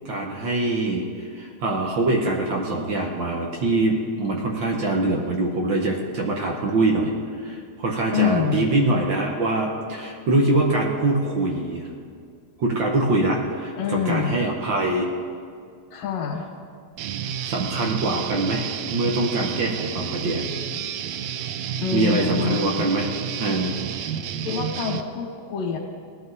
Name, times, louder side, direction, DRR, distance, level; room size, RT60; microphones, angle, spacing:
voice 1, 0.0-7.1 7.4-11.9 12.6-15.1 17.4-20.5 21.9-23.1 23.4-23.8, right 2 dB, 60° right, 0 dB, 1.2 m, -24 dB
voice 2, 8.1-8.7 13.8-14.4 15.9-16.5 21.8-22.9 24.4-25.8, left 7 dB, 90° left, -2 dB, 3.0 m, -26 dB
Guitar, 17.0-25.0, right 9 dB, 80° right, 1.6 m, -30 dB
19.0 x 12.5 x 4.0 m, 2.3 s
omnidirectional pair, 3.8 m